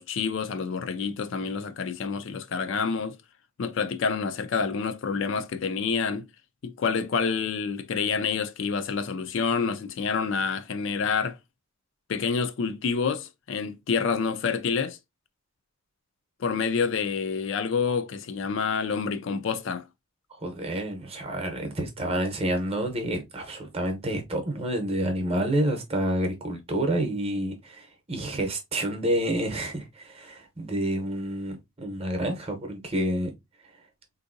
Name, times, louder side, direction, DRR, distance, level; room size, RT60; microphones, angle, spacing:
voice 1, 0.0-3.2 3.6-6.3 6.6-11.4 12.1-15.0 16.4-19.8, left 5 dB, 55° left, 0.4 m, -28 dB
voice 2, 20.3-33.3, right 1 dB, 25° right, 0.8 m, -29 dB
3.6 x 2.6 x 2.5 m
head